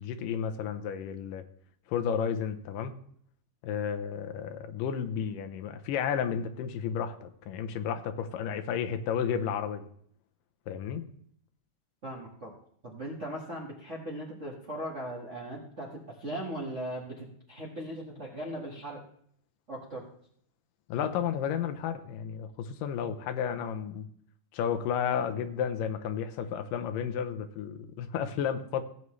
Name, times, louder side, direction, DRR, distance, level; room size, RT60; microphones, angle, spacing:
voice 1, 0.0-1.4 1.9-2.9 3.6-9.9 10.7-11.0 20.9-24.1 24.5-28.8, left 8 dB, 85° left, 8 dB, 2.5 m, -32 dB
voice 2, 12.0-12.5 12.8-19.0 19.7-20.0, right 1 dB, 40° right, -3 dB, 1.1 m, -38 dB
16.5 x 8.2 x 3.2 m, 0.64 s
omnidirectional pair, 3.8 m